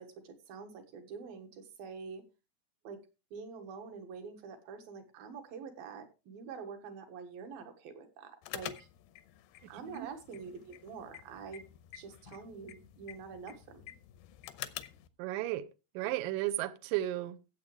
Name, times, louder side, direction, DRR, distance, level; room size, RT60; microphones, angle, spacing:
voice 1, 0.0-2.2 2.8-3.0 3.3-8.9 9.7-11.6 11.9-14.0, right 5 dB, 65° right, 3.2 m, -46 dB
sound 1, 8.4-15.1, left 13 dB, 85° left, 2.7 m, -48 dB
voice 2, 15.2-15.7 16.0-17.4, right 14 dB, 80° right, 2.0 m, -34 dB
15.5 x 8.1 x 3.3 m
omnidirectional pair, 4.7 m